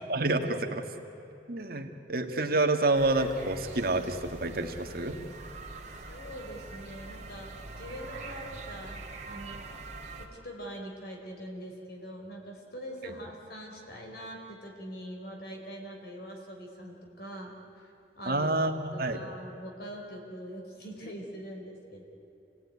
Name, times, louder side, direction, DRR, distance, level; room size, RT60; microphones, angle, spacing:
voice 1, 0.1-0.8 1.5-5.2 13.0-13.1 18.3-19.2, right 2 dB, 55° right, 5 dB, 1.7 m, -28 dB
sound 1, 2.9-10.3, right 3 dB, 40° right, 2.8 m, -44 dB
voice 2, 6.1-9.7 10.2-18.5 18.9-22.0, equal, 60° left, 1 dB, 4.5 m, -43 dB
28.0 x 18.5 x 9.6 m, 2.9 s
head